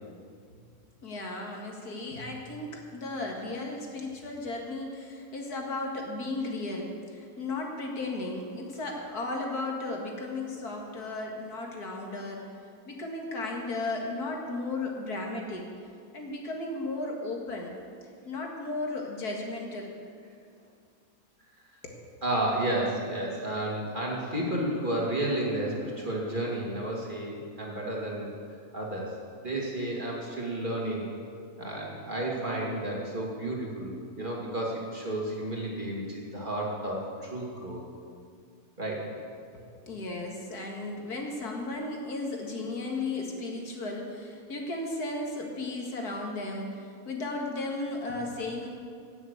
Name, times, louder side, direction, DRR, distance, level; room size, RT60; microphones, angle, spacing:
voice 1, 1.0-12.5 12.9-15.7 16.1-17.7 18.3-19.9 21.8-22.0 39.5-48.7, left 2 dB, 75° left, 0 dB, 2.5 m, -35 dB
voice 2, 22.2-28.3 28.7-29.1 29.4-31.1 31.6-37.8 38.8-39.1, right 1 dB, 30° right, -3 dB, 2.6 m, -32 dB
17.0 x 7.3 x 8.2 m, 2.3 s
omnidirectional pair, 1.6 m